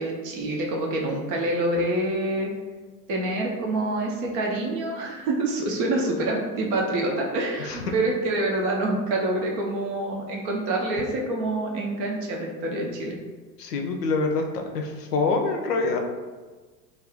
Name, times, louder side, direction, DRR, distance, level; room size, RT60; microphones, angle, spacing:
voice 1, 0.0-2.5 3.1-13.2, right 2 dB, 35° right, -1 dB, 0.5 m, -26 dB
voice 2, 13.6-14.4 14.7-16.0, left 3 dB, 70° left, 3 dB, 0.6 m, -25 dB
2.4 x 2.3 x 3.5 m, 1.3 s
figure-of-eight pair, 90°, 50 cm